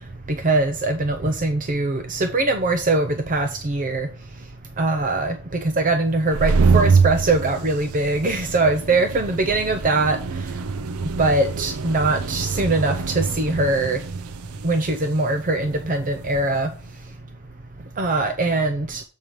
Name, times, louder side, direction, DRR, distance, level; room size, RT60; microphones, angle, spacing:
voice 1, 0.3-4.1 4.8-10.2 11.2-14.0 14.6-16.7 18.0-19.0, right 2 dB, 35° right, 6 dB, 0.6 m, -22 dB
sound 1, 6.1-16.6, right 4 dB, 75° right, 0.5 m, -25 dB
7.3 x 4.7 x 5.1 m, 0.39 s
head